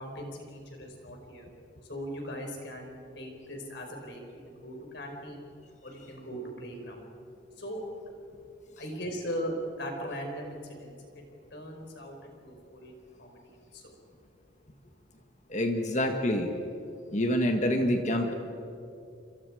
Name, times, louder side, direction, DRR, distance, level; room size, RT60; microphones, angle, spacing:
voice 1, 0.0-1.5 1.9-5.5 5.8-7.1 7.6-7.8 8.8-11.2 11.5-12.9 13.2-14.0, equal, 55° left, 2 dB, 5.0 m, -39 dB
voice 2, 15.5-16.5 17.1-18.3, left 1 dB, 35° left, 4 dB, 1.6 m, -26 dB
28.5 x 26.0 x 5.0 m, 2.7 s
head